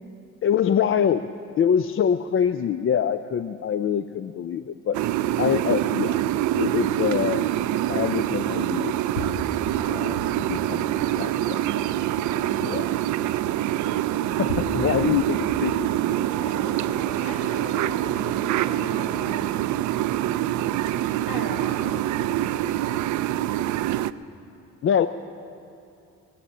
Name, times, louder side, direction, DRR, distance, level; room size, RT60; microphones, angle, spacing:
voice 1, 0.4-1.3 1.6-5.0 5.4-6.2 6.6-7.5 7.9-9.6 9.9-10.9 11.2-12.0 12.6-12.9 14.4-15.9 24.8-25.1, left 8 dB, 45° left, 11 dB, 0.5 m, -25 dB
sound 1, 4.9-24.1, right 13 dB, 70° right, 0.5 m, -25 dB
sound 2, 7.2-7.3 8.5-8.6 9.2-10.5 11.0-11.5 12.5-12.6 13.8-13.9 14.5-15.8 16.3-16.9, left 2 dB, 80° left, 1.3 m, -37 dB
voice 2, 10.6-11.5 12.2-13.1 16.4-19.4 21.3-23.1 23.4-23.6, left 1 dB, 60° left, -1 dB, 4.6 m, -40 dB
19.5 x 10.0 x 7.2 m, 2.6 s
cardioid pair, 90°, 30 cm